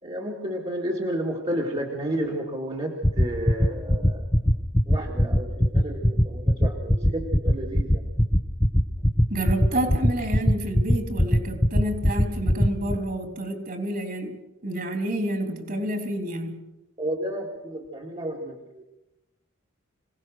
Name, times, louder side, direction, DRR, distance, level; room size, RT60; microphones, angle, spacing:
voice 1, 0.0-4.3 4.9-8.0 17.0-18.8, right 1 dB, 30° right, -1 dB, 2.2 m, -31 dB
sound 1, 3.0-12.9, equal, 15° left, 1.2 m, -18 dB
voice 2, 9.3-16.6, right 1 dB, 45° right, 5 dB, 3.4 m, -29 dB
26.0 x 18.0 x 6.5 m, 0.97 s
head